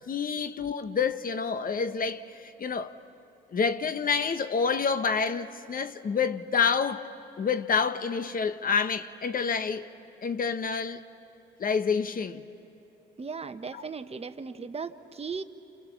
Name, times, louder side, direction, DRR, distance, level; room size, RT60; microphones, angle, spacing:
voice 1, 0.1-2.9 3.5-7.1 7.4-9.9 10.2-11.0 11.6-12.4 13.7-13.8, left 5 dB, 45° left, 1.0 m, -28 dB
voice 2, 13.2-15.4, right 5 dB, 30° right, 1.1 m, -37 dB
29.5 x 28.5 x 7.2 m
cardioid pair, 90°, 20 cm